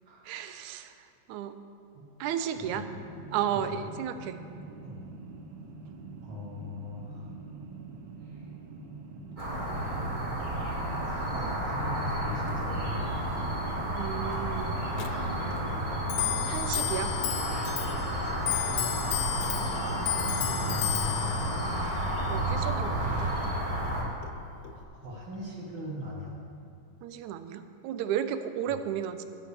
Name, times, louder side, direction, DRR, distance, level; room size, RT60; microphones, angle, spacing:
voice 1, 0.3-0.9 1.3-1.6 2.2-2.9 3.3-4.4 13.9-14.8 16.4-17.1 22.3-23.3 27.0-29.2, right 9 dB, 85° right, 10 dB, 2.0 m, -33 dB
voice 2, 2.5-3.0 3.5-3.8 4.8-5.0 6.2-7.3 8.2-8.5 11.3-13.1 20.6-21.4 24.7-26.4, left 2 dB, 45° right, -3 dB, 2.0 m, -40 dB
sound 1, 2.5-13.9, right 4 dB, 70° right, 1.6 m, -44 dB
sound 2, 9.4-24.0, right 1 dB, 25° right, 1.0 m, -31 dB
Clock, 14.9-24.8, left 12 dB, 80° left, 1.8 m, -34 dB
8.7 x 7.9 x 6.8 m, 2.5 s
omnidirectional pair, 3.3 m